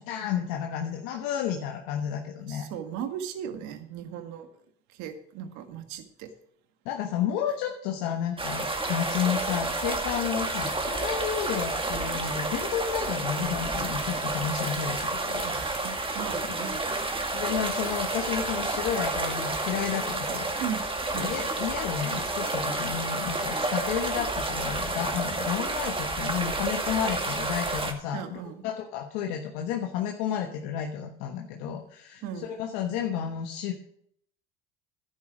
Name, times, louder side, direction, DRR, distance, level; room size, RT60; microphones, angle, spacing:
voice 1, 0.1-2.7 6.8-15.5 17.3-20.5 21.1-33.7, left 9 dB, 75° left, 3 dB, 1.3 m, -31 dB
voice 2, 2.4-4.5 4.9-6.3 15.4-17.1 19.6-19.7 20.3-20.8 21.1-21.4 28.1-28.6 32.2-32.6, right 8 dB, 70° right, 8 dB, 1.8 m, -37 dB
sound 1, 8.4-27.9, right 2 dB, 15° right, 2.0 m, -30 dB
11.0 x 9.6 x 5.0 m, 0.66 s
hypercardioid pair, 75°, 30 cm